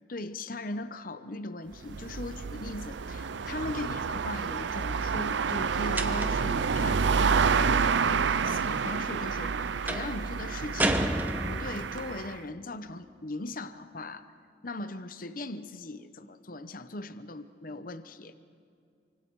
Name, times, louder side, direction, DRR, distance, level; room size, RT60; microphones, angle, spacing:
voice 1, 0.1-14.3 14.6-18.4, left 2 dB, 45° left, 11 dB, 0.9 m, -39 dB
sound 1, 1.7-12.4, right 5 dB, 70° right, 0.5 m, -29 dB
sound 2, 6.0-6.6 9.9-10.2 10.8-11.9, right 1 dB, 10° right, 1.0 m, -30 dB
27.5 x 25.0 x 4.7 m, 2.4 s
head